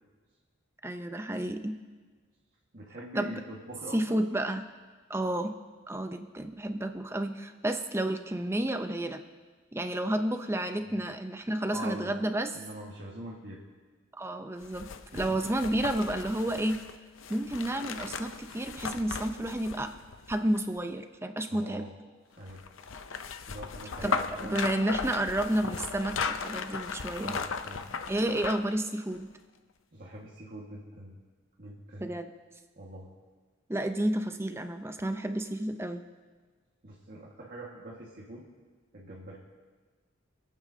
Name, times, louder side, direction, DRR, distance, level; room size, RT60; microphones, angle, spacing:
voice 1, 0.8-1.8 3.2-3.3 3.9-4.7 5.1-5.6 5.9-9.2 9.7-12.6 14.2-16.8 17.3-19.9 20.3-21.9 24.0-24.2 24.4-27.4 28.1-29.3 32.0-32.3 33.7-36.0, right 1 dB, 15° right, 7 dB, 0.6 m, -31 dB
voice 2, 2.7-4.2 10.9-11.1 11.7-12.1 12.5-13.6 15.1-15.4 21.5-21.9 22.4-22.6 23.5-24.6 27.2-27.9 29.9-31.2 31.6-32.1 32.8-33.1 36.8-38.4 38.9-39.4, right 1 dB, 45° right, -5 dB, 1.7 m, -43 dB
sound 1, 14.6-20.8 22.5-28.8 29.1-29.2, left 5 dB, 80° left, 0.7 m, -37 dB
26.5 x 9.0 x 2.8 m, 1.4 s
head